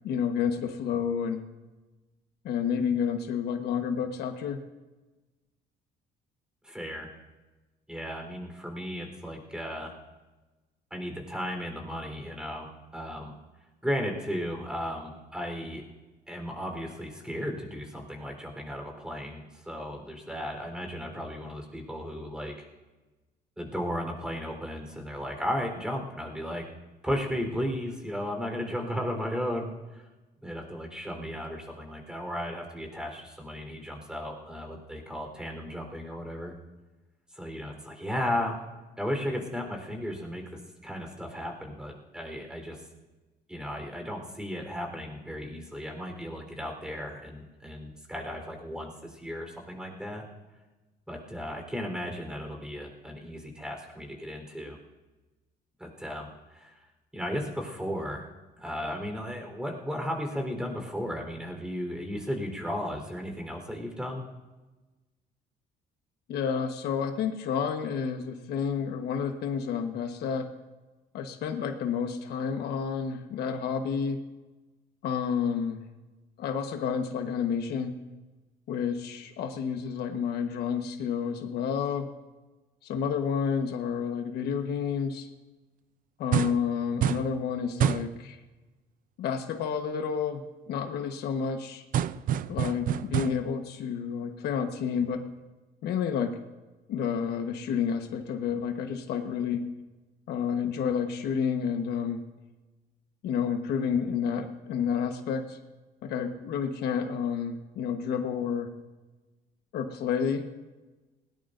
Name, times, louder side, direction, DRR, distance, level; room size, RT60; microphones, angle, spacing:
voice 1, 0.0-1.4 2.4-4.6 66.3-70.5 71.1-74.2 75.0-75.8 76.4-78.0 78.7-82.1 82.8-85.3 86.2-88.4 89.2-91.8 92.5-95.2 95.8-96.4 96.9-99.6 100.3-102.2 103.2-105.6 106.0-108.7 109.7-110.5, left 7 dB, 75° left, 5 dB, 1.3 m, -30 dB
voice 2, 6.6-7.1 7.9-9.9 10.9-13.3 13.8-15.9 16.3-22.5 23.6-26.7 27.0-30.0 30.4-36.5 37.3-38.6 39.0-42.8 43.5-50.2 51.1-54.8 55.8-56.7 57.1-58.3 58.6-64.2, equal, 5° right, 2 dB, 4.0 m, -35 dB
sound 1, 86.3-86.7 87.0-87.3 87.8-88.1 91.9-93.5, right 10 dB, 55° right, 0.5 m, -27 dB
19.5 x 18.5 x 2.6 m, 1.2 s
cardioid pair, 110°, 17 cm